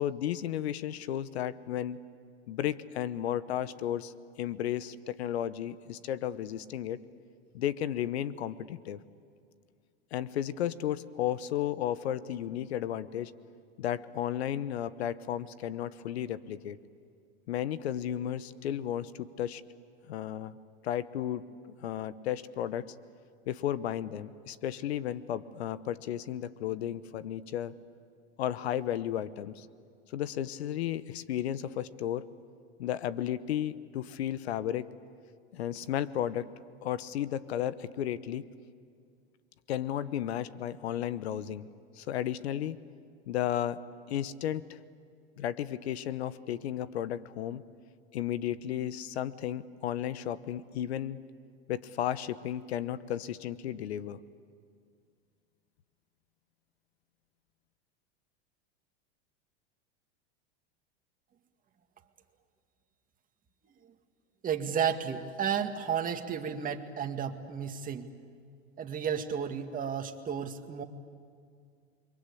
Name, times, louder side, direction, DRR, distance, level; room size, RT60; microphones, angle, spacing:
voice 1, 0.0-2.0 2.5-4.1 4.4-7.0 7.5-9.0 10.1-13.3 13.8-16.8 17.5-19.6 20.1-20.6 20.8-22.9 23.5-27.7 28.4-29.7 30.1-32.3 32.8-34.9 35.5-36.5 36.8-38.5 39.7-41.7 42.0-42.8 43.3-43.8 44.1-44.8 45.4-47.6 48.1-51.2 51.7-54.2, left 11 dB, 80° left, 16 dB, 1.1 m, -33 dB
voice 2, 64.4-68.1 68.8-70.8, right 7 dB, 25° right, 4 dB, 2.0 m, -32 dB
29.5 x 23.0 x 8.5 m, 2.2 s
hypercardioid pair, 110°, 32 cm